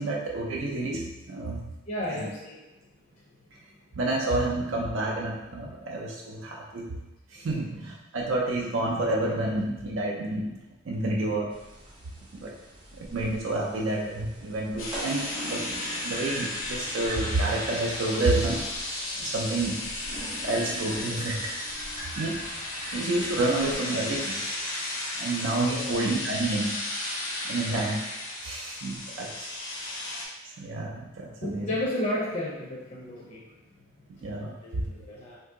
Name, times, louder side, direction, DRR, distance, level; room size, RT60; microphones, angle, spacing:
voice 1, 0.0-1.6 2.1-2.3 3.9-7.0 7.3-10.5 10.8-11.5 12.3-12.5 12.9-15.6 16.0-18.6 19.2-20.0 20.4-21.5 22.2-22.4 22.9-24.4 25.2-26.8 27.5-28.0 28.4-29.5 29.9-30.2 30.6-31.7 34.2-34.6, right 2 dB, 75° right, -3 dB, 0.4 m, -29 dB
voice 2, 1.9-2.6 5.6-5.8 7.3-7.5 25.7-26.0 31.4-33.5 34.4-35.4, left 1 dB, 40° left, -5 dB, 0.5 m, -33 dB
sound 1, 11.5-23.8, right 1 dB, 25° right, 0.7 m, -42 dB
sound 2, 14.8-30.3, left 1 dB, 80° left, 0.8 m, -34 dB
2.7 x 2.6 x 3.6 m, 1.1 s
head